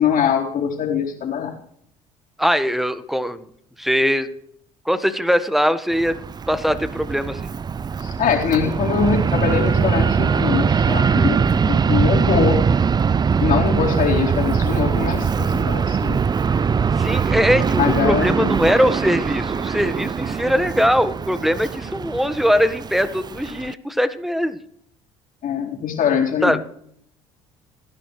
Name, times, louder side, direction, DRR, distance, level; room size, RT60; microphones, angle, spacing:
voice 1, 0.0-1.5 8.0-12.6 13.4-16.2 17.8-18.6 25.4-26.6, left 7 dB, 55° left, -1 dB, 4.2 m, -22 dB
voice 2, 2.4-3.4 3.8-4.3 4.8-6.2 6.5-7.4 17.0-24.6 26.4-26.6, equal, ahead, 12 dB, 1.4 m, -21 dB
Fixed-wing aircraft airplane, 5.9-23.7, right 6 dB, 25° right, 0.4 m, -21 dB
29.0 x 11.0 x 3.3 m, 0.69 s
hypercardioid pair, 60°, 17 cm